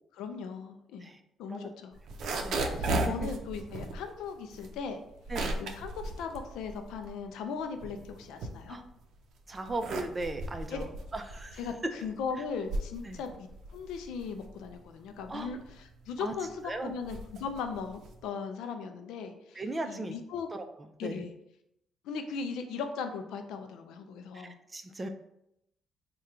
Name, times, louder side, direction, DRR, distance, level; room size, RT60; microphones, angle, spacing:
voice 1, 0.1-1.1 1.4-1.9 2.7-5.0 5.6-8.8 10.7-10.8 11.6-20.5 21.0-21.3 22.0-24.6, left 5 dB, 90° left, 6 dB, 0.4 m, -38 dB
sound 1, 1.9-7.2 7.6-9.0 9.5-18.3, right 2 dB, 75° right, 0.5 m, -36 dB
voice 2, 2.4-3.3 5.3-5.6 8.7-8.8 9.5-11.6 13.0-13.2 15.3-15.5 16.2-16.3 16.6-16.9 19.5-20.1 20.5-21.2 24.3-25.1, right 2 dB, 25° right, 6 dB, 0.5 m, -38 dB
3.7 x 2.2 x 4.2 m, 0.79 s
cardioid pair, 90°, 0 cm